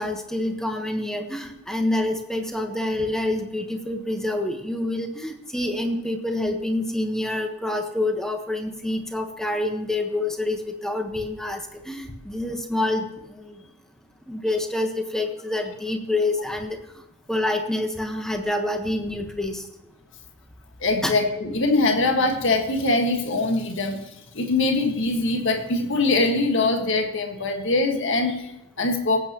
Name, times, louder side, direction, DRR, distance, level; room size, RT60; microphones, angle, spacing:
voice 1, 0.0-13.6 14.3-17.0 17.3-19.6 21.0-21.1, left 1 dB, ahead, 4 dB, 1.2 m, -27 dB
voice 2, 20.8-29.2, left 2 dB, 55° left, 4 dB, 1.7 m, -23 dB
18.0 x 8.9 x 3.0 m, 0.93 s
head